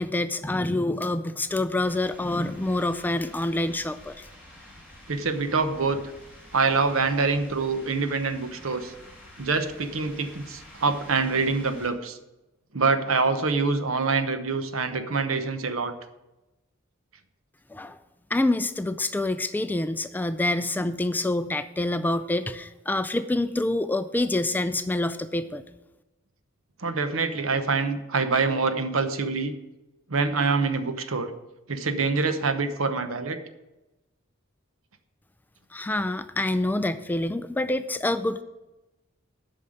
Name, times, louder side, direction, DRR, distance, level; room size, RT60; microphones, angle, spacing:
voice 1, 0.0-4.2 17.7-18.0 18.3-25.6 35.7-38.4, left 2 dB, 10° left, 11 dB, 0.3 m, -26 dB
sound 1, 1.8-11.9, left 1 dB, 10° right, 2.8 m, -49 dB
voice 2, 5.1-6.0 6.5-8.9 9.4-12.2 12.7-15.9 26.8-29.5 30.1-31.3 31.7-33.4, right 4 dB, 85° right, 9 dB, 0.9 m, -25 dB
8.6 x 5.6 x 7.8 m, 1.0 s
head